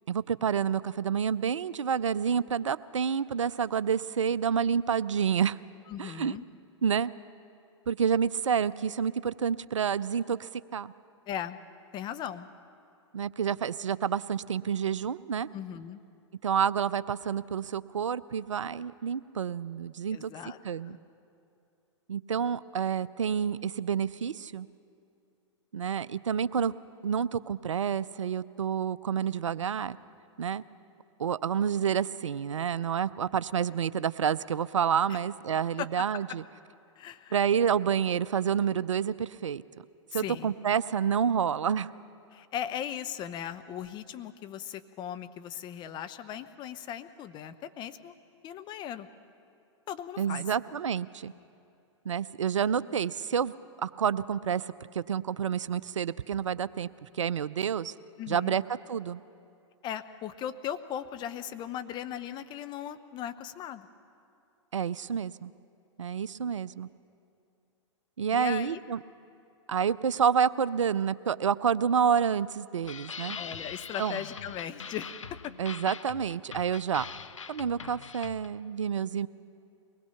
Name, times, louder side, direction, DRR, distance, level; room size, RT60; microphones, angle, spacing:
voice 1, 0.1-5.6 6.0-6.3 6.8-7.1 7.9-10.9 13.1-15.5 16.4-20.3 20.6-21.0 22.1-24.7 25.7-26.7 27.0-30.0 30.4-30.6 31.2-36.4 37.3-39.6 40.1-41.9 50.2-51.3 52.1-53.5 53.8-54.7 54.9-57.9 58.3-58.6 58.9-59.2 64.7-65.5 66.0-66.9 68.2-69.0 69.7-73.4 74.0-74.2 75.6-77.1 77.5-79.3, right 7 dB, 80° right, 18 dB, 0.5 m, -29 dB
voice 2, 5.9-6.5 11.3-11.6 11.9-12.5 15.5-16.0 20.1-20.6 20.8-21.0 35.1-35.2 35.8-35.9 37.0-37.3 40.1-40.5 42.3-48.1 48.4-49.1 49.9-50.4 58.2-58.6 59.8-63.9 68.3-68.8 73.3-75.5, left 10 dB, 30° left, 11 dB, 0.8 m, -38 dB
sound 1, 72.8-78.6, left 6 dB, 85° left, 0.7 m, -42 dB
23.0 x 19.5 x 5.7 m, 2.6 s
hypercardioid pair, 110°, 16 cm